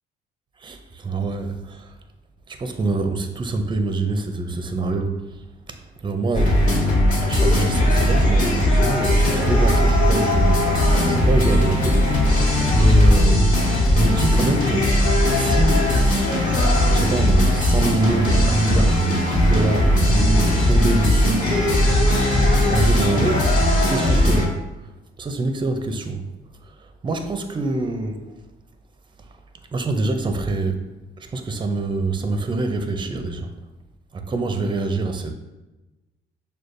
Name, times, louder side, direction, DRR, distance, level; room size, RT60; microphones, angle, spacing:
voice 1, 0.6-1.9 2.5-5.4 5.7-6.7 7.2-10.8 11.0-12.1 12.7-16.0 16.9-21.6 22.7-23.6 23.9-24.6 25.2-26.2 27.0-28.3 29.7-30.8 31.2-33.5 34.1-35.3, right 2 dB, 25° right, 7 dB, 0.5 m, -25 dB
sound 1, 6.3-24.5, left 1 dB, 40° left, 1.2 m, -18 dB
6.3 x 2.3 x 2.5 m, 1.1 s
cardioid pair, 90°, 20 cm